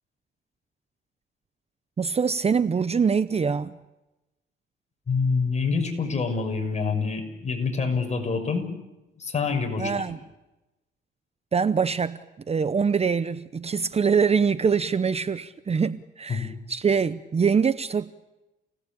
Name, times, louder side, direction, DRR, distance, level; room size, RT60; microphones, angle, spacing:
voice 1, 2.0-3.8 9.8-10.2 11.5-12.2 12.5-18.1, right 6 dB, 30° right, 0.8 m, -24 dB
voice 2, 5.1-8.7 9.2-9.9 16.3-16.5, left 4 dB, 35° left, 6.1 m, -26 dB
29.5 x 18.5 x 8.7 m
cardioid pair, 90°, 20 cm